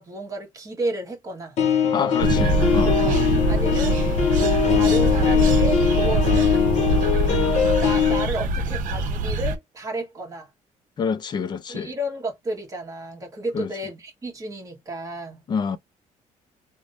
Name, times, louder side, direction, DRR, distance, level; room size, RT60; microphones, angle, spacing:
voice 1, 0.0-1.6 3.0-3.2 3.5-4.0 4.7-6.5 7.8-10.5 11.7-15.4, right 1 dB, 25° right, 1.3 m, -32 dB
sound 1, 1.6-8.3, left 7 dB, 50° left, 0.8 m, -21 dB
voice 2, 1.9-3.0 11.0-11.9 13.5-13.7 15.5-15.8, left 6 dB, 30° left, 0.4 m, -27 dB
sound 2, 2.2-9.6, right 2 dB, 65° right, 0.8 m, -23 dB
3.3 x 2.1 x 2.4 m
cardioid pair, 165°, 14 cm